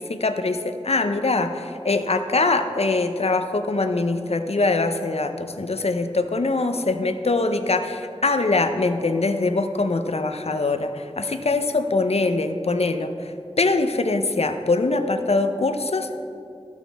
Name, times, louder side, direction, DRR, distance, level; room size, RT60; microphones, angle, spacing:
voice 1, 0.0-16.2, left 3 dB, 70° left, 8 dB, 0.5 m, -23 dB
13.5 x 6.2 x 3.4 m, 2.7 s
wide cardioid pair, 45°, 11 cm